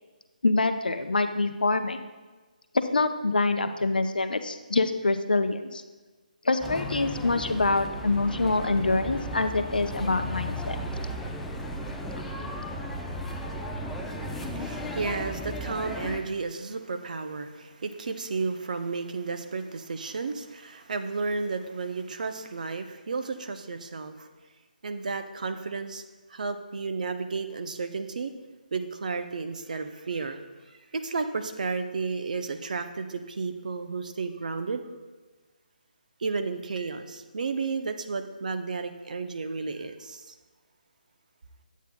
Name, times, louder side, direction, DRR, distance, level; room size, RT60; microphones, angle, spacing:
voice 1, 0.4-2.0 2.7-5.8 6.4-10.8, left 3 dB, 85° left, 8 dB, 0.6 m, -25 dB
sound 1, 6.6-16.2, equal, 5° left, 0.5 m, -35 dB
voice 2, 14.3-24.3 24.8-26.0 26.3-28.3 28.7-30.4 30.7-34.9 36.2-40.3, right 4 dB, 60° right, 8 dB, 0.6 m, -32 dB
10.0 x 8.2 x 2.2 m, 1.3 s
figure-of-eight pair, 150°, 5 cm